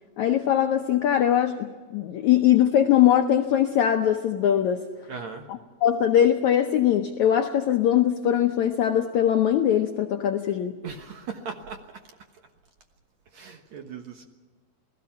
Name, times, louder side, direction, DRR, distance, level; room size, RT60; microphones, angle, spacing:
voice 1, 0.2-4.8 5.5-10.8, left 10 dB, 75° left, 5 dB, 1.7 m, -21 dB
voice 2, 5.1-5.5 10.8-11.8 13.3-14.3, right 5 dB, 60° right, 5 dB, 2.1 m, -38 dB
28.5 x 18.5 x 5.9 m, 1.4 s
omnidirectional pair, 4.5 m